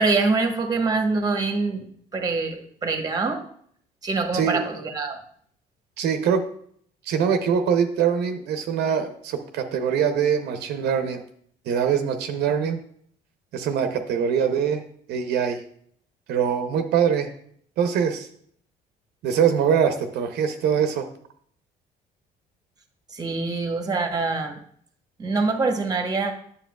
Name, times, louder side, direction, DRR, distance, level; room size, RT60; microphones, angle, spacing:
voice 1, 0.0-1.9 2.1-3.4 4.0-5.2 23.1-24.6 25.2-26.3, right 3 dB, 20° right, 5 dB, 1.1 m, -24 dB
voice 2, 6.0-6.4 7.1-11.2 11.7-12.8 13.5-14.8 15.1-15.6 16.3-17.3 17.8-18.3 19.2-21.1, right 7 dB, 75° right, 6 dB, 0.7 m, -23 dB
9.1 x 6.8 x 2.3 m, 0.63 s
cardioid pair, 110°, 17 cm